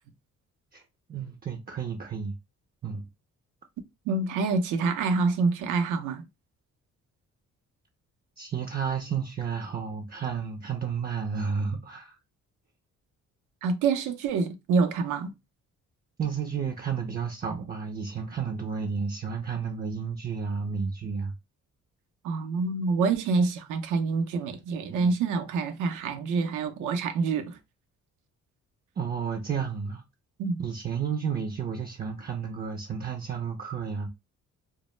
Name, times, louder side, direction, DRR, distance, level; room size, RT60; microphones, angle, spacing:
voice 1, 1.1-2.3 2.8-3.0 8.4-12.2 16.2-21.3 24.9-25.1 29.0-30.0 30.6-34.1, right 6 dB, 30° right, 0.4 m, -32 dB
voice 2, 4.1-6.3 13.6-15.3 22.2-27.6 30.4-30.6, right 4 dB, 85° right, 0.5 m, -26 dB
2.0 x 2.0 x 3.0 m
cardioid pair, 90°, 30 cm